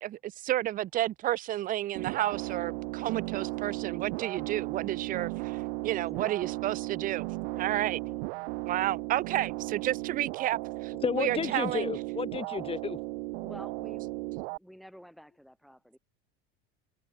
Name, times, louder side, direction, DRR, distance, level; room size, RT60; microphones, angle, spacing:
voice 1, 0.0-7.3 7.6-8.0 8.7-11.9, right 14 dB, 30° right, 0.4 m, -31 dB
sound 1, 1.9-14.6, right 28 dB, 85° right, 0.5 m, -36 dB
voice 2, 5.9-6.6 6.8-6.9 7.5-8.2 8.8-8.9 13.4-16.0, equal, ahead, 3.4 m, -51 dB
voice 3, 11.0-13.0, left 5 dB, 20° left, 1.0 m, -32 dB
open air
supercardioid pair, 125°, 31 cm